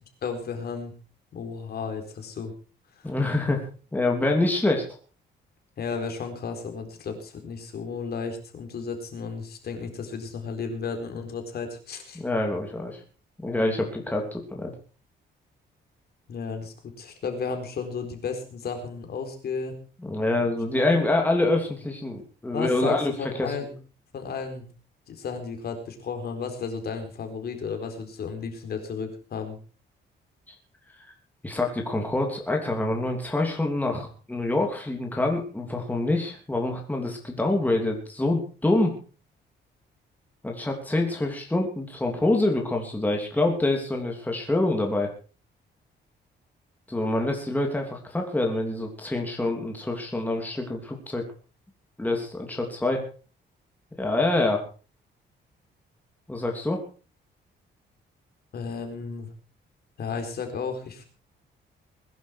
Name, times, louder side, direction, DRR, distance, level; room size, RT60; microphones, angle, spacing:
voice 1, 0.2-0.9 1.3-2.5 3.0-3.1 5.8-12.2 16.3-19.8 20.8-21.0 22.5-23.7 24.1-24.7 25.1-29.6 58.5-59.3 60.0-61.0, left 5 dB, 55° left, 5 dB, 4.4 m, -33 dB
voice 2, 3.0-3.6 3.9-4.9 12.1-13.0 13.4-14.7 20.1-23.6 30.5-30.6 31.4-39.0 40.4-45.1 46.9-51.2 52.0-53.0 54.0-54.6 56.3-56.8, left 2 dB, 10° left, 1 dB, 2.9 m, -26 dB
21.0 x 11.5 x 4.6 m, 0.37 s
cardioid pair, 145°, 19 cm